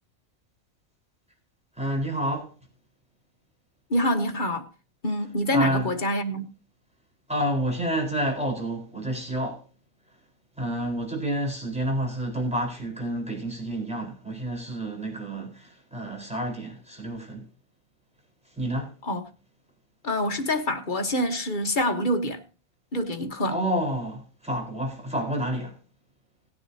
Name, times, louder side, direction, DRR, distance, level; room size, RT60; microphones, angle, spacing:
voice 1, 1.7-2.5 5.5-5.9 7.3-9.7 10.1-10.2 10.6-17.5 18.4-19.0 23.5-25.8, right 1 dB, 5° right, 4.3 m, -29 dB
voice 2, 3.9-4.7 5.0-6.5 19.1-19.2 20.0-22.4 22.9-23.5, left 1 dB, 35° left, 1.3 m, -26 dB
18.5 x 9.6 x 2.8 m
omnidirectional pair, 1.5 m